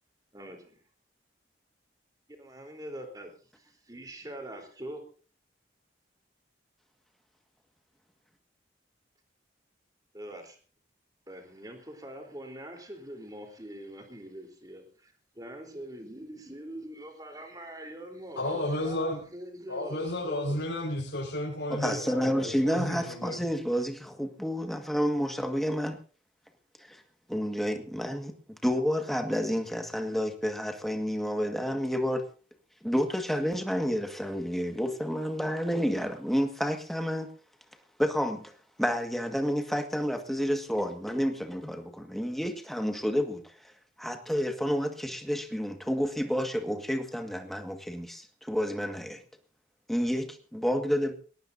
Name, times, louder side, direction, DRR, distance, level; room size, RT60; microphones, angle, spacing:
voice 1, 0.3-0.8 2.4-3.3 3.6-5.0 10.1-10.6 11.3-20.6, right 1 dB, 20° right, 3 dB, 3.7 m, -43 dB
voice 2, 18.4-19.2 19.7-23.4, left 1 dB, 80° left, -5 dB, 4.9 m, -32 dB
voice 3, 21.7-26.0 26.9-27.0 27.3-28.4 28.6-32.3 32.8-37.3 38.0-38.5 38.8-43.7 44.0-49.2 49.9-51.1, equal, ahead, 5 dB, 1.7 m, -30 dB
21.0 x 18.0 x 2.7 m, 0.38 s
head